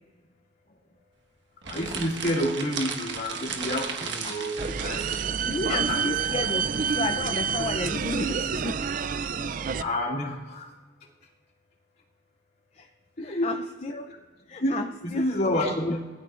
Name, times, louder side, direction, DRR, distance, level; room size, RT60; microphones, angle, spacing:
sound 1, 1.6-5.3, right 5 dB, 65° right, 1.4 m, -35 dB
voice 1, 1.7-5.2 5.7-6.0 9.8-10.7 13.2-13.5 14.1-14.2 14.6-14.8 15.0-16.0, left 1 dB, 50° left, -4 dB, 2.7 m, -29 dB
sound 2, 4.6-9.8, right 6 dB, 45° right, 0.4 m, -28 dB
voice 2, 5.5-8.9 12.7-12.9 13.2-14.1 14.5-15.3 15.5-16.0, left 3 dB, 35° left, 6 dB, 0.5 m, -33 dB
20.5 x 14.0 x 2.5 m, 1.4 s
head